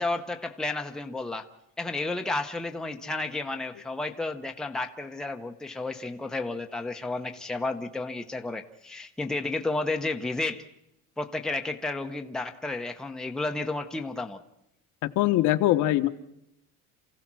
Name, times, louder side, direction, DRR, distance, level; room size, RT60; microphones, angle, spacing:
voice 1, 0.0-1.5 1.8-10.6 11.2-14.4, left 2 dB, ahead, 4 dB, 0.8 m, -32 dB
voice 2, 15.2-16.1, left 14 dB, 60° left, 8 dB, 1.2 m, -22 dB
28.0 x 16.0 x 6.1 m, 0.81 s
cardioid pair, 160°, 34 cm